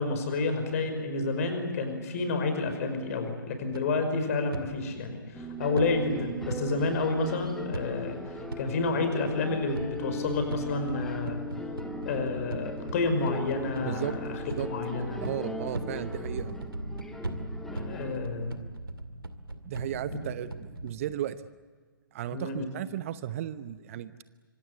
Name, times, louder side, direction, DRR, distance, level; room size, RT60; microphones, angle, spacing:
voice 1, 0.0-8.2 8.6-11.4 12.1-15.2 17.7-18.5 22.3-22.6, left 3 dB, 40° left, 7 dB, 5.5 m, -30 dB
sound 1, 3.7-4.6 5.8-6.6 7.7-8.2 8.5-8.6 9.7-20.9, right 1 dB, 85° right, 2.3 m, -39 dB
sound 2, 5.3-18.1, left 1 dB, 5° left, 2.4 m, -39 dB
voice 2, 15.2-16.5 19.6-21.4 22.1-24.1, right 12 dB, 40° right, 14 dB, 0.9 m, -35 dB
26.0 x 25.0 x 8.1 m, 1.5 s
figure-of-eight pair, 125°, 12 cm